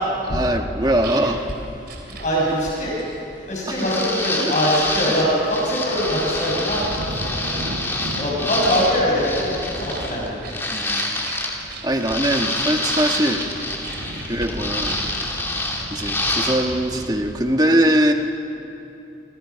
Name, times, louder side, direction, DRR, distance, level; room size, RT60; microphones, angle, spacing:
voice 1, 0.3-1.4 3.7-3.9 4.4-4.5 6.6-6.7 10.7-11.3 11.8-13.4 14.3-15.0 15.9-18.1, right 1 dB, 20° right, 4 dB, 1.4 m, -21 dB
sound 1, 0.7-16.7, right 3 dB, 55° right, 3.9 m, -40 dB
sound 2, 1.4-17.5, equal, 80° right, 5.2 m, -37 dB
voice 2, 2.1-2.9 3.5-6.8 7.1-7.6 8.1-10.4 14.1-14.3, equal, 40° left, -4 dB, 6.0 m, -23 dB
sound 3, 3.7-11.7 12.0-16.7 17.0-17.1, left 2 dB, 15° left, 2.6 m, -27 dB
29.0 x 25.5 x 5.8 m, 2.9 s
head